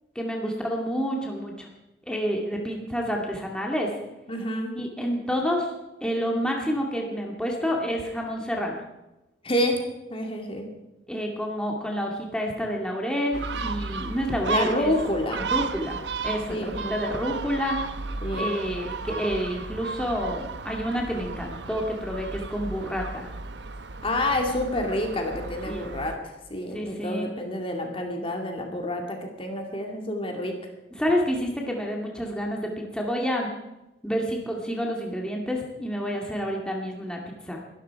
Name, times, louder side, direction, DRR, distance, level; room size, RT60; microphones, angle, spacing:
voice 1, 0.2-1.7 2.1-3.9 4.7-5.7 6.0-8.8 11.1-14.9 15.5-16.0 16.2-17.8 18.4-23.3 25.7-25.8 26.7-27.3 31.0-33.5 34.0-37.6, equal, 5° left, 0 dB, 2.2 m, -29 dB
voice 2, 4.3-4.7 9.4-9.8 10.1-10.7 14.5-15.5 16.5-17.0 18.2-18.6 24.0-30.5, left 1 dB, 30° left, 3 dB, 2.3 m, -28 dB
Gull seagull, 13.3-26.2, right 4 dB, 70° right, 1.0 m, -34 dB
23.0 x 12.5 x 4.7 m, 0.96 s
head